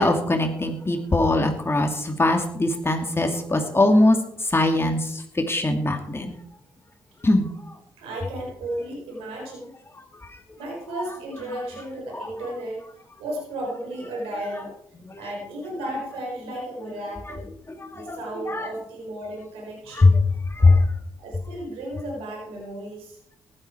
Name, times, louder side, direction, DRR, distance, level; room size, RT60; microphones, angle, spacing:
voice 1, 0.0-4.2 4.5-5.0 5.5-6.3 7.2-7.5 18.1-18.2 18.5-18.7 20.0-20.1 20.6-20.8, left 2 dB, 25° left, 4 dB, 2.4 m, -20 dB
voice 2, 8.0-9.7 10.6-12.8 13.2-14.7 15.2-17.5 17.9-20.2 20.6-20.8 21.2-23.2, right 1 dB, 90° right, -1 dB, 4.6 m, -34 dB
15.0 x 11.5 x 4.6 m, 0.69 s
supercardioid pair, 50°, 9 cm